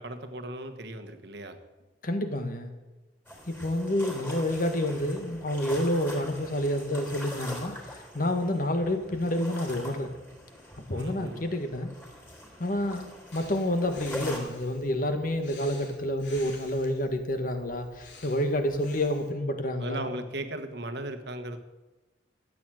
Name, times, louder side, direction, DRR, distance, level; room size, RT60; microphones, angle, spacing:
voice 1, 0.0-1.6 10.9-11.4 19.8-21.6, right 1 dB, 65° right, 7 dB, 1.5 m, -37 dB
voice 2, 2.0-2.7 3.5-10.1 10.9-11.9 12.6-20.1, left 1 dB, 50° left, 6 dB, 1.6 m, -29 dB
sound 1, 3.3-14.4, left 1 dB, 10° left, 3.8 m, -43 dB
Breathing, 13.3-19.3, left 3 dB, 80° left, 3.0 m, -50 dB
14.0 x 9.2 x 7.7 m, 1.1 s
head